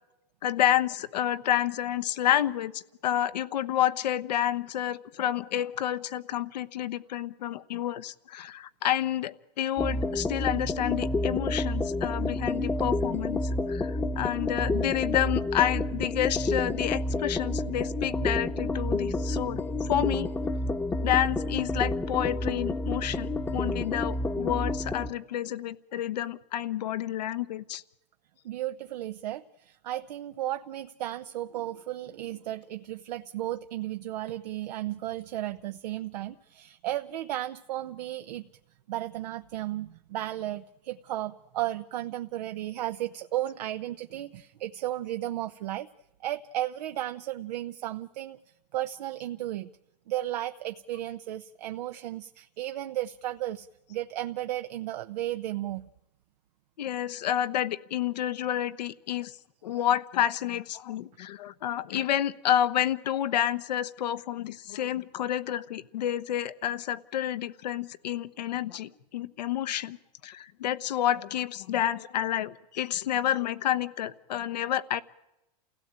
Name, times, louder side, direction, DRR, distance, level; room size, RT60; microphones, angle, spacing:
voice 1, 0.4-20.3 21.0-27.8 56.8-59.4 59.6-70.0 70.2-75.0, left 11 dB, 85° left, 12 dB, 1.1 m, -29 dB
sound 1, 9.8-25.1, left 2 dB, 10° left, 1.0 m, -29 dB
voice 2, 28.4-38.5 38.9-45.9 46.2-48.4 48.7-49.7 50.1-55.9, right 14 dB, 75° right, 9 dB, 0.8 m, -34 dB
28.5 x 17.0 x 8.9 m, 0.95 s
supercardioid pair, 130°, 21 cm